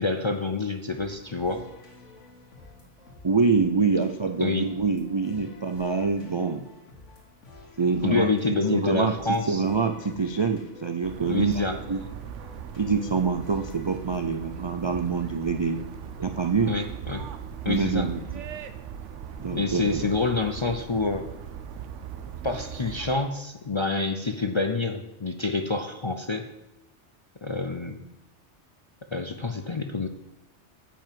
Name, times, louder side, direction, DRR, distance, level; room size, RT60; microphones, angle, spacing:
voice 1, 0.0-1.6 4.4-4.7 8.0-9.6 11.3-11.8 16.7-17.3 17.6-18.1 19.5-21.3 22.4-26.5 27.4-28.0 29.1-30.1, left 3 dB, 40° left, 5 dB, 0.4 m, -27 dB
sound 1, 0.9-14.0, left 2 dB, 90° left, 1.8 m, -50 dB
voice 2, 3.2-6.6 7.8-8.3 8.7-9.2 9.4-12.0 12.8-15.8 16.2-16.8 17.6-18.2 19.4-20.0, right 4 dB, 50° right, 7 dB, 0.3 m, -25 dB
sound 2, 11.0-23.2, right 8 dB, 90° right, 1.0 m, -39 dB
9.0 x 5.5 x 7.5 m, 0.91 s
omnidirectional pair, 1.2 m